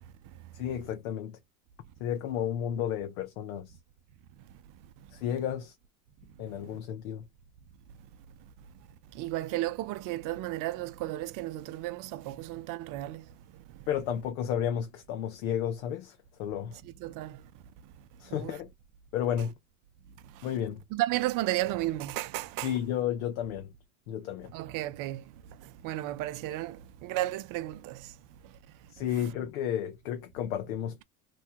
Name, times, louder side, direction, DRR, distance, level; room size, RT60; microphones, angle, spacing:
voice 1, 0.5-1.4 2.0-3.7 5.1-5.7 6.4-7.2 13.9-16.8 18.2-18.7 19.1-19.5 20.4-20.8 22.6-23.7 24.1-24.5 28.9-31.0, left 9 dB, 80° left, 0.8 m, -32 dB
voice 2, 9.2-13.2 17.0-17.4 18.3-18.5 20.9-22.7 24.5-25.2 25.8-28.0, right 16 dB, 50° right, 0.5 m, -33 dB
3.0 x 2.2 x 2.8 m
supercardioid pair, 105°, 42 cm